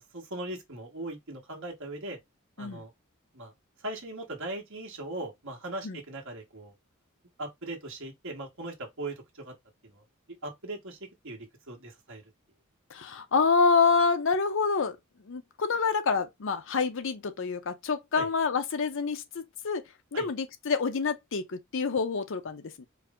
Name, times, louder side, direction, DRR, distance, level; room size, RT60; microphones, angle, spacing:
voice 1, 0.0-2.2 2.6-2.9 3.3-3.5 3.8-6.7 7.4-9.5 9.8-10.0 10.4-11.0 11.2-12.2 18.1-18.3 20.1-20.3, right 2 dB, 65° right, 1.4 m, -39 dB
voice 2, 12.9-15.0 15.3-19.8 20.1-22.9, left 4 dB, 60° left, 0.6 m, -27 dB
4.7 x 2.1 x 3.6 m
head